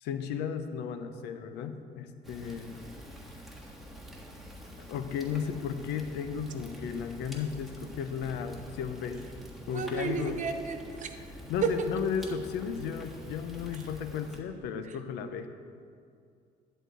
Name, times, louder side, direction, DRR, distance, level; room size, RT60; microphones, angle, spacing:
voice 1, 0.0-2.9 4.9-9.2 9.7-10.4 11.5-15.5, left 7 dB, 90° left, 9 dB, 0.7 m, -34 dB
Fire, 2.2-14.4, equal, ahead, 1.5 m, -47 dB
voice 2, 9.7-11.1 11.6-11.7 13.7-14.1 14.8-15.0, right 6 dB, 50° right, 6 dB, 0.9 m, -33 dB
11.0 x 4.4 x 8.0 m, 2.3 s
cardioid pair, 110°, 17 cm